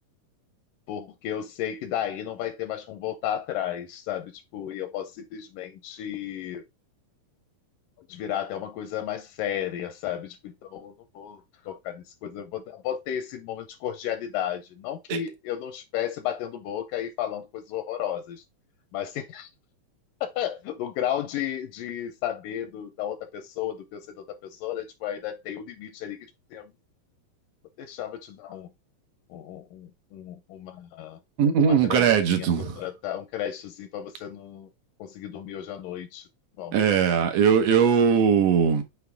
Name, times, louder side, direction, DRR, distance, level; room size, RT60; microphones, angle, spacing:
voice 1, 0.9-6.6 8.0-18.4 18.9-19.5 20.2-26.2 26.5-26.7 27.8-28.7 29.3-31.2 31.6-34.7 35.0-36.3 36.6-36.8, left 10 dB, 80° left, 2.3 m, -33 dB
voice 2, 31.4-32.8 36.7-38.8, right 7 dB, 65° right, 1.8 m, -20 dB
7.0 x 3.9 x 3.5 m
omnidirectional pair, 4.0 m